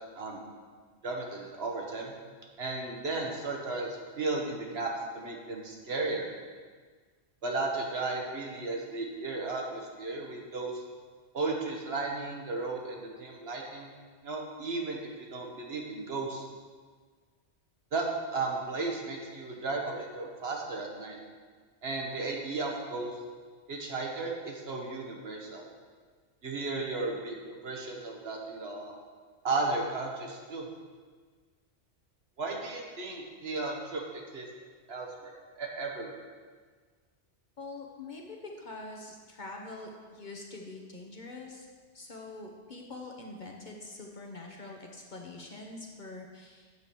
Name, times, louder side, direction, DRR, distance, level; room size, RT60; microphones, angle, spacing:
voice 1, 1.0-2.1 2.6-4.9 5.1-6.3 7.4-10.8 11.3-13.9 14.2-16.5 17.9-18.0 18.3-21.2 21.8-23.1 23.7-25.7 26.4-28.9 29.4-30.7 32.4-34.5 34.9-36.2, right 3 dB, 60° right, 0 dB, 1.4 m, -35 dB
voice 2, 37.6-41.7 41.9-46.7, left 2 dB, 45° left, 0 dB, 0.9 m, -44 dB
8.2 x 4.6 x 6.8 m, 1.5 s
omnidirectional pair, 1.2 m